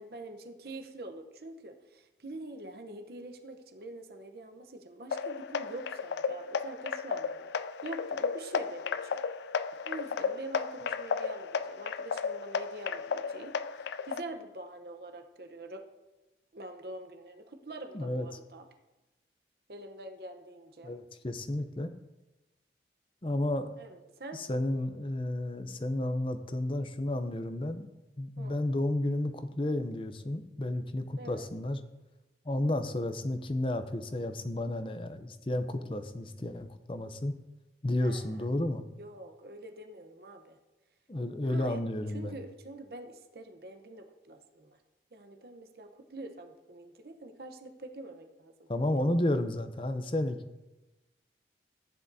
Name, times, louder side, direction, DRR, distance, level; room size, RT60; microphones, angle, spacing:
voice 1, 0.0-7.5 7.8-9.2 9.8-15.8 16.5-18.7 19.7-20.9 23.8-24.4 28.4-28.6 31.2-31.5 38.0-38.5 39.0-40.6 41.4-41.8 42.1-44.8 45.1-49.2, right 2 dB, 60° right, 5 dB, 0.9 m, -45 dB
sound 1, 5.1-14.2, left 6 dB, 75° left, 0.3 m, -34 dB
voice 2, 17.9-18.3 20.8-21.9 23.2-23.7 24.3-27.9 28.2-31.8 32.4-37.3 37.8-38.9 41.1-42.3 48.7-50.4, left 1 dB, 30° left, 9 dB, 0.6 m, -32 dB
14.5 x 9.9 x 2.7 m, 1.1 s
head